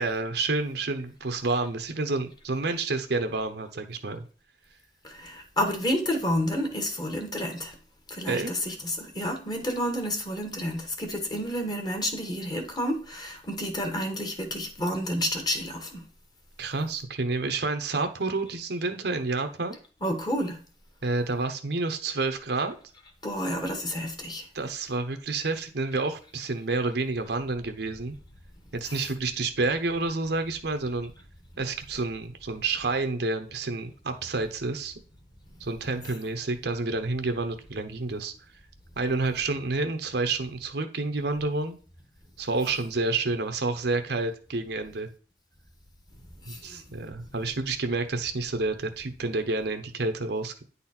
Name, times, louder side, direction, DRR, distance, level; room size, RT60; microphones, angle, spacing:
voice 1, 0.0-4.2 8.3-8.5 16.6-19.8 21.0-22.7 24.5-28.2 28.7-31.1 31.6-34.9 35.6-38.3 39.0-41.8 42.4-45.1 46.5-50.6, right 3 dB, 65° right, 0.9 m, -29 dB
voice 2, 5.0-7.8 8.1-16.0 20.0-20.6 23.2-24.5 28.9-29.0 46.4-46.8, equal, 25° left, 1.5 m, -30 dB
9.5 x 4.2 x 4.3 m
head